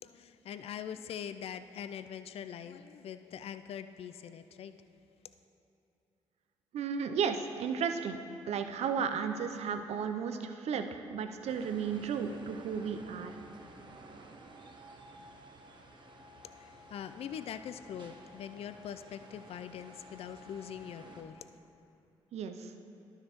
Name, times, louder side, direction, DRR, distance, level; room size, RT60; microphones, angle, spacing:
voice 1, 0.0-4.7 16.4-21.5, left 8 dB, 55° left, 11 dB, 0.4 m, -43 dB
voice 2, 6.7-8.2 8.5-13.4 22.3-22.7, right 6 dB, 65° right, 7 dB, 0.5 m, -34 dB
sound 1, 11.5-21.2, right 1 dB, 40° right, 0.9 m, -52 dB
12.0 x 6.5 x 3.0 m, 2.7 s
hypercardioid pair, 45°, 12 cm